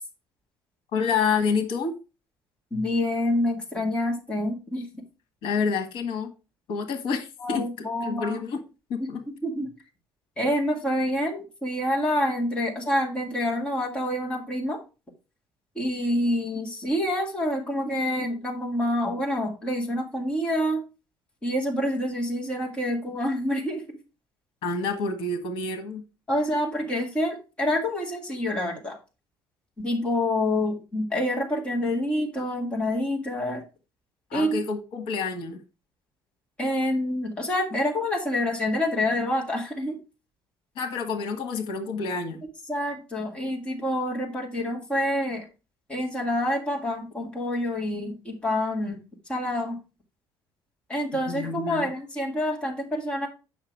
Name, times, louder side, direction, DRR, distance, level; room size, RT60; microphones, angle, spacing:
voice 1, 0.9-1.9 5.4-6.3 6.7-8.6 8.9-9.2 24.6-26.0 34.3-35.6 40.8-42.4 51.3-51.9, left 5 dB, 80° left, 1.5 m, -28 dB
voice 2, 2.7-4.9 7.4-8.4 9.3-9.7 10.4-14.8 15.8-20.8 21.4-23.8 26.3-29.0 29.8-33.6 34.3-34.6 36.6-40.0 42.7-45.4 45.9-49.0 49.3-49.8 50.9-53.3, left 1 dB, 10° left, 2.0 m, -27 dB
8.8 x 5.9 x 4.6 m
cardioid pair, 180°, 9 cm